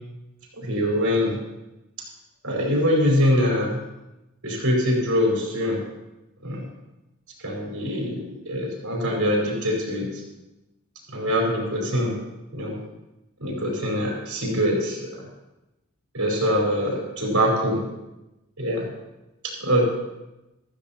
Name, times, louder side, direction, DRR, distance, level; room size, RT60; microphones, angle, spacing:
voice 1, 0.6-1.4 2.4-3.8 4.4-5.8 6.4-6.6 7.4-10.2 11.1-12.1 12.5-12.8 13.4-15.2 16.1-17.8 18.6-18.9 19.6-19.9, equal, 75° right, -2 dB, 4.7 m, -23 dB
15.0 x 14.0 x 2.9 m, 0.98 s
head